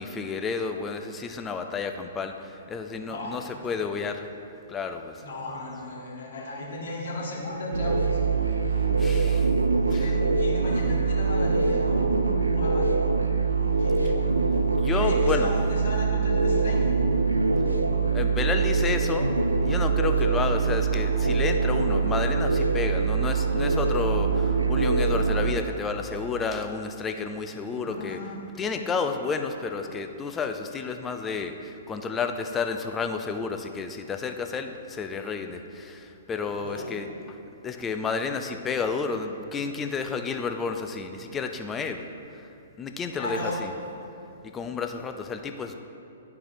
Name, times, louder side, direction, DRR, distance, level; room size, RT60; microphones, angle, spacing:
voice 1, 0.0-4.3 4.7-5.1 9.0-9.5 9.9-10.0 14.8-15.5 18.1-19.3 19.6-28.2 28.6-37.1 37.6-42.0 42.8-43.7 44.4-45.7, left 5 dB, 15° left, 6 dB, 0.4 m, -31 dB
voice 2, 3.1-3.8 5.2-8.2 9.9-12.9 13.8-14.2 14.9-17.0 27.7-28.4 36.6-37.1 43.1-43.7, left 1 dB, 55° left, -3 dB, 1.4 m, -35 dB
sound 1, 7.7-25.5, right 4 dB, 80° right, 0.4 m, -23 dB
11.0 x 4.7 x 2.6 m, 2.7 s
figure-of-eight pair, 115°, 0 cm